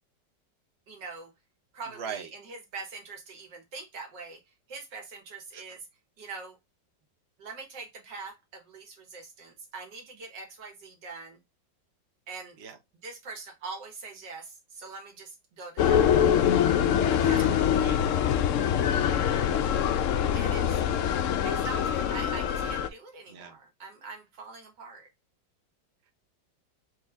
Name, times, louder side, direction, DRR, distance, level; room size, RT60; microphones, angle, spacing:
voice 1, 0.9-1.3 1.7-5.9 6.2-6.6 7.4-11.4 12.3-12.6 13.0-16.1 17.2-17.6 20.3-20.8 21.4-25.1, right 4 dB, 90° right, 2.2 m, -43 dB
voice 2, 1.9-2.3 5.5-5.6 12.6-12.8 17.1-18.0 23.3-23.6, right 7 dB, 45° right, 0.9 m, -41 dB
sound 1, 15.8-22.9, left 9 dB, 85° left, 0.6 m, -24 dB
4.6 x 3.2 x 3.4 m
omnidirectional pair, 1.9 m